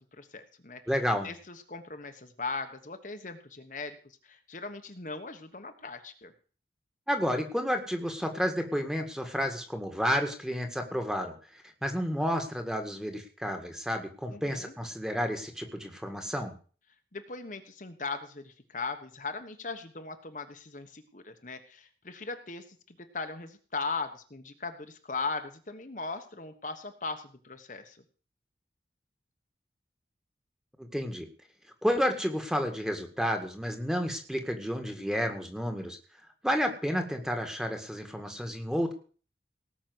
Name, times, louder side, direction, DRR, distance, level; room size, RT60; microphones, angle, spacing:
voice 1, 0.2-0.8 1.2-6.3 14.3-14.7 17.1-28.0, left 4 dB, 45° left, 7 dB, 1.2 m, -39 dB
voice 2, 0.9-1.3 7.1-16.5 30.8-31.3 31.8-36.0 36.4-38.9, equal, 5° right, 4 dB, 1.8 m, -31 dB
18.5 x 6.2 x 7.9 m, 0.40 s
head